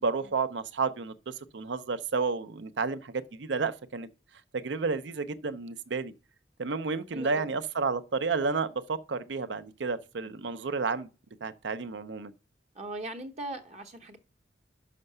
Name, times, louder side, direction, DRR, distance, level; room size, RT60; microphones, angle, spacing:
voice 1, 0.0-4.1 4.5-6.1 6.6-11.1 11.4-12.3, right 4 dB, 75° right, 0.6 m, -31 dB
voice 2, 7.1-7.5 12.7-14.2, right 2 dB, 40° right, 0.8 m, -39 dB
5.8 x 5.5 x 6.5 m
head